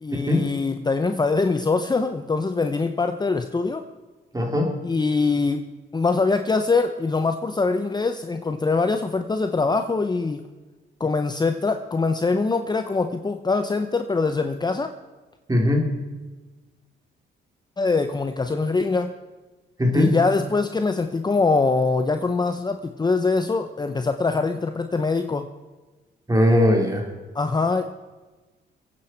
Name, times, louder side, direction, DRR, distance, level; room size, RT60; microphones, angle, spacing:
voice 1, 0.0-3.8 4.8-5.6 5.9-10.4 11.0-14.9 17.8-19.1 19.9-25.5 27.3-27.8, left 4 dB, 20° left, 8 dB, 0.8 m, -23 dB
voice 2, 4.3-4.7 15.5-15.9 19.8-20.1 26.3-27.1, left 1 dB, 20° right, 1 dB, 3.5 m, -19 dB
23.0 x 9.3 x 4.5 m, 1.2 s
cardioid pair, 90°, 20 cm